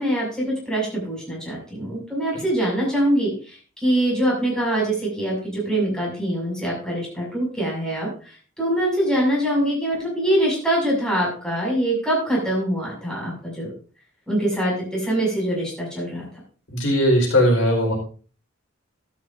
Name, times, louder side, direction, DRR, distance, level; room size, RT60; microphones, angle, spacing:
voice 1, 0.0-13.7 14.3-16.2, right 1 dB, 5° left, -4 dB, 6.5 m, -24 dB
voice 2, 16.7-17.9, equal, 75° left, 0 dB, 4.8 m, -18 dB
13.5 x 12.0 x 2.7 m, 0.38 s
head